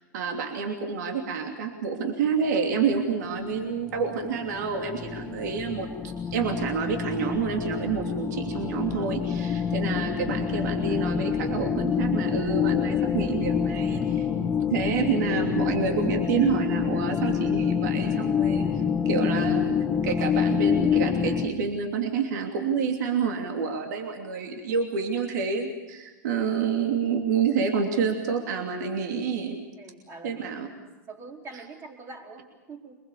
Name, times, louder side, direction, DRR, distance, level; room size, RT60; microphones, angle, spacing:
voice 1, 0.1-5.9 6.3-14.3 14.7-18.7 19.0-19.8 20.0-29.6 30.2-30.7 31.5-31.6, right 5 dB, 70° right, 3 dB, 2.9 m, -28 dB
sound 1, 3.1-21.5, left 7 dB, 20° left, 1.7 m, -27 dB
voice 2, 29.8-30.5 31.1-33.0, right 3 dB, 25° right, 1 dB, 4.7 m, -44 dB
24.5 x 21.5 x 7.0 m, 1.2 s
hypercardioid pair, 125°, 10 cm